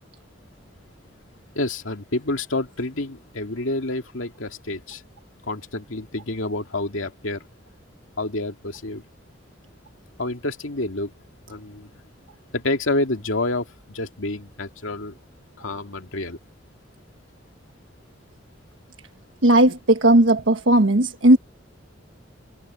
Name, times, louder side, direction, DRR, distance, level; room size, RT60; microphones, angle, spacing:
voice 1, 1.6-5.0 5.4-7.4 8.2-9.0 10.2-11.1 11.5-11.9 12.5-15.2 15.6-16.4, left 2 dB, 90° left, 2.3 m, -28 dB
voice 2, 19.4-21.4, right 1 dB, 75° right, 1.3 m, -16 dB
head